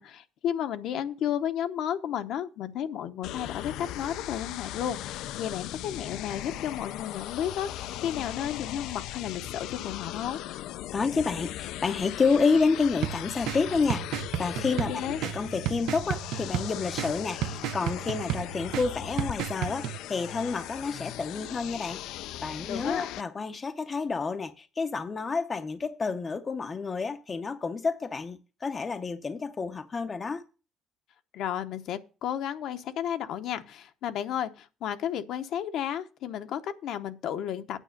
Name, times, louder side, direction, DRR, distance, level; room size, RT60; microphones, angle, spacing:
voice 1, 0.0-10.4 14.9-15.2 22.7-23.1 31.3-37.8, left 10 dB, 60° left, 0.8 m, -33 dB
sound 1, 3.2-23.2, left 13 dB, 75° left, 0.4 m, -38 dB
voice 2, 10.9-22.0 22.4-30.4, left 4 dB, 20° left, 0.6 m, -29 dB
sound 2, 13.0-20.0, right 13 dB, 70° right, 0.5 m, -34 dB
9.2 x 6.1 x 6.3 m
cardioid pair, 160°, 0 cm